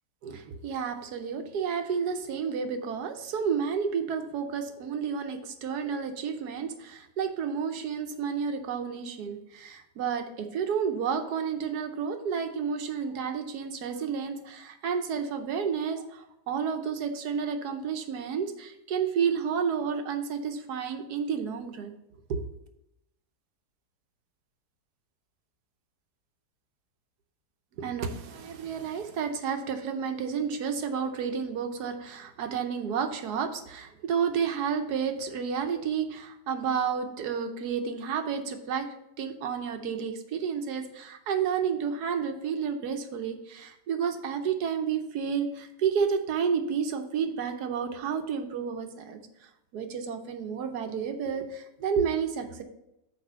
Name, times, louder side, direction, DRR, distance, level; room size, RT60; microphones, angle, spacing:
voice 1, 0.2-21.9 22.3-22.4 27.8-38.9 39.2-49.2 49.7-52.6, right 6 dB, 70° right, 6 dB, 1.3 m, -31 dB
6.7 x 4.9 x 5.5 m, 0.86 s
omnidirectional pair, 1.8 m